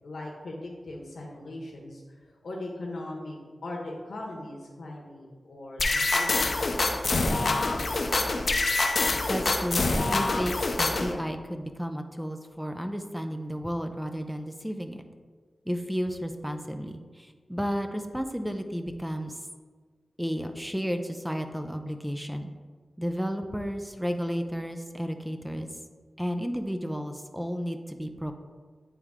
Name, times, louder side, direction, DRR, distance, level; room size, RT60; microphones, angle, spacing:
voice 1, 0.0-7.7, left 1 dB, 80° left, -2 dB, 1.1 m, -40 dB
sound 1, 5.8-11.1, left 2 dB, 60° left, 0.6 m, -25 dB
voice 2, 9.3-15.0 15.7-19.4 20.2-22.5 23.0-25.7 26.2-28.3, equal, 5° right, 6 dB, 0.5 m, -32 dB
9.0 x 3.4 x 3.6 m, 1.5 s
cardioid pair, 55°, 0 cm